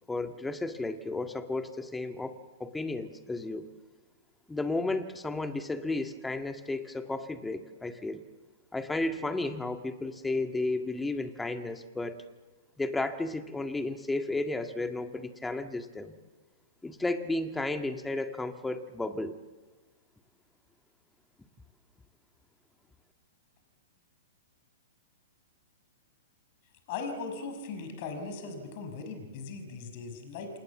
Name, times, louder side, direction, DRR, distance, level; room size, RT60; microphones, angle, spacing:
voice 1, 0.1-3.7 4.5-8.2 8.7-12.2 12.8-16.1 16.8-19.4, left 2 dB, 10° left, 7 dB, 1.9 m, -33 dB
voice 2, 26.9-30.5, left 4 dB, 50° left, 7 dB, 5.9 m, -38 dB
28.0 x 27.5 x 7.3 m, 1.3 s
hypercardioid pair, 115°, 0 cm